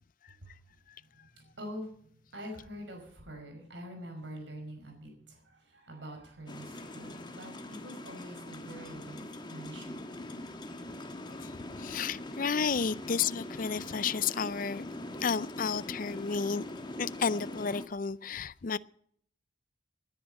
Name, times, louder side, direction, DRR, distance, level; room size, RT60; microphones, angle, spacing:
voice 1, 1.3-10.0, equal, 70° right, 5.5 m, -45 dB
sound 1, 6.5-17.9, left 1 dB, 25° left, 1.4 m, -42 dB
voice 2, 11.3-14.8 15.2-16.6 17.0-18.8, left 6 dB, 45° left, 0.5 m, -32 dB
19.5 x 10.0 x 5.5 m
head